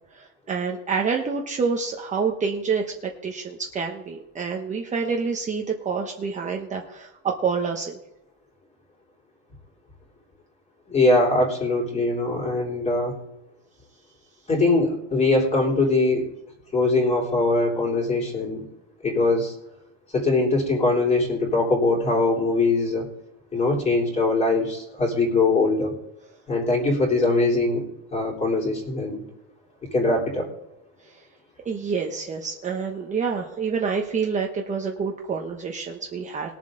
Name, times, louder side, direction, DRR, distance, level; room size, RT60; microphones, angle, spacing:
voice 1, 0.1-2.8 3.2-8.0 31.6-36.6, right 5 dB, 20° right, 1 dB, 1.0 m, -27 dB
voice 2, 10.9-13.2 14.5-16.3 16.7-18.7 19.0-19.5 20.1-23.0 23.5-25.9 26.5-27.8 28.1-29.2 29.9-30.5, left 2 dB, 20° left, -2 dB, 3.5 m, -22 dB
20.5 x 7.4 x 3.8 m, 0.90 s
cardioid pair, 165°, 34 cm